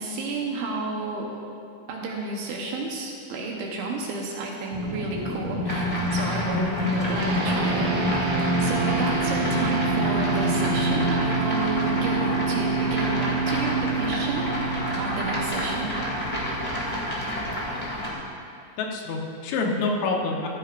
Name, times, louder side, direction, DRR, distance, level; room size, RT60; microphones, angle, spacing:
voice 1, 0.0-1.4 1.9-7.9 8.6-14.5 15.0-15.9, right 3 dB, 75° right, -1 dB, 3.0 m, -31 dB
sound 1, 4.7-11.5, left 1 dB, 15° right, 1.8 m, -29 dB
sound 2, 5.6-18.1, equal, 25° left, 1.0 m, -30 dB
sound 3, 7.2-16.8, right 4 dB, 90° right, 5.3 m, -27 dB
voice 2, 18.8-20.5, left 3 dB, 80° left, 0 dB, 3.6 m, -27 dB
15.5 x 15.0 x 2.6 m, 2.5 s
omnidirectional pair, 5.9 m